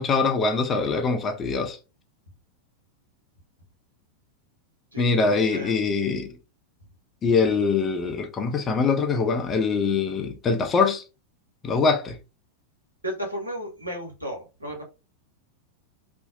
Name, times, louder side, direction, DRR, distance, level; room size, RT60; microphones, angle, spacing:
voice 1, 0.0-1.8 5.0-6.3 7.2-11.0 11.6-12.2, left 4 dB, 25° left, 0.5 m, -23 dB
voice 2, 4.9-5.8 13.0-14.8, equal, 80° right, 1.0 m, -34 dB
2.5 x 2.0 x 2.5 m
figure-of-eight pair, 90°, 0 cm